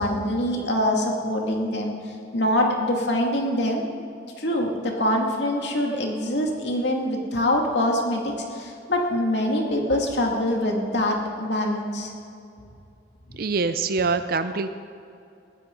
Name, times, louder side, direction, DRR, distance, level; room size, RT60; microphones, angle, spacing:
voice 1, 0.0-2.0 2.3-3.8 4.4-12.1, left 1 dB, 75° left, 1 dB, 2.4 m, -24 dB
voice 2, 13.3-14.7, right 4 dB, 55° right, 10 dB, 0.5 m, -24 dB
20.5 x 15.0 x 3.9 m, 2.5 s
head